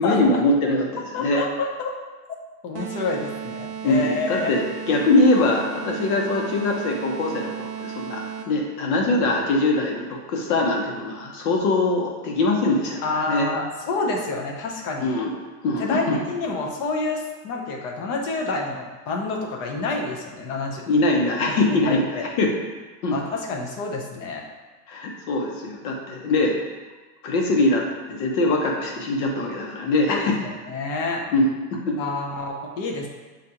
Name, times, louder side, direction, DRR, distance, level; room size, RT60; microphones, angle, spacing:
voice 1, 0.0-1.4 3.8-13.5 15.0-15.3 15.6-16.2 20.9-22.5 23.0-23.2 24.9-26.6 27.2-30.5 31.3-31.5 31.9-32.0, left 2 dB, 65° left, 0 dB, 1.0 m, -22 dB
voice 2, 1.1-1.9 2.6-4.5 13.0-15.2 15.8-20.8 21.6-22.2 23.1-24.4 30.1-30.2 30.7-31.3 32.0-33.1, left 3 dB, 35° left, 1 dB, 0.6 m, -28 dB
sound 1, 2.7-8.7, right 8 dB, 65° right, 0.8 m, -34 dB
6.6 x 2.5 x 2.8 m, 1.3 s
supercardioid pair, 155°, 48 cm